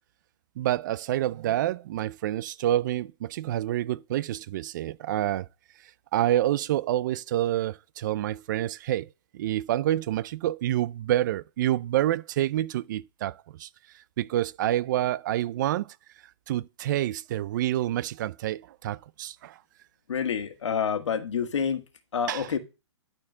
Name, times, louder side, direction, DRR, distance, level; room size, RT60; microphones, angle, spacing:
voice 1, 0.6-5.5 6.1-9.1 9.3-13.7 13.9-15.9 16.5-19.6 22.3-22.6, right 13 dB, 40° right, 0.4 m, -28 dB
voice 2, 20.1-21.8 22.1-22.6, left 7 dB, 80° left, 1.6 m, -28 dB
11.5 x 4.4 x 5.5 m
hypercardioid pair, 150°, 15 cm